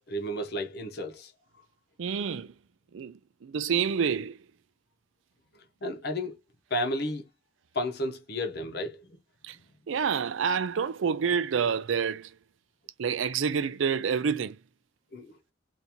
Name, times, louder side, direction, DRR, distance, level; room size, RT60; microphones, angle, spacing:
voice 1, 0.1-1.3 5.8-6.4 6.7-7.2 7.7-9.1 15.1-15.3, left 1 dB, 55° left, 0.9 m, -32 dB
voice 2, 2.0-2.5 2.9-4.4 9.4-9.6 9.9-12.3 13.0-14.6, right 6 dB, 80° right, 0.4 m, -28 dB
2.9 x 2.6 x 3.5 m
head